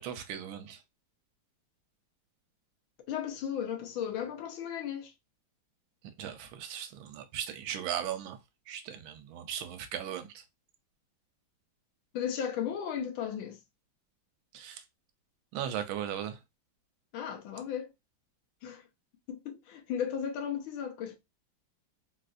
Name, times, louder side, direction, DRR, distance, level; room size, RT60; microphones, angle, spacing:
voice 1, 0.0-0.8 6.2-8.4 8.7-10.4 14.5-14.8 15.5-16.4, right 10 dB, 85° right, 1.4 m, -37 dB
voice 2, 3.1-5.1 12.1-13.6 17.1-17.9 18.6-18.8 19.3-21.2, left 8 dB, 80° left, 1.5 m, -35 dB
3.9 x 2.5 x 2.4 m
omnidirectional pair, 2.2 m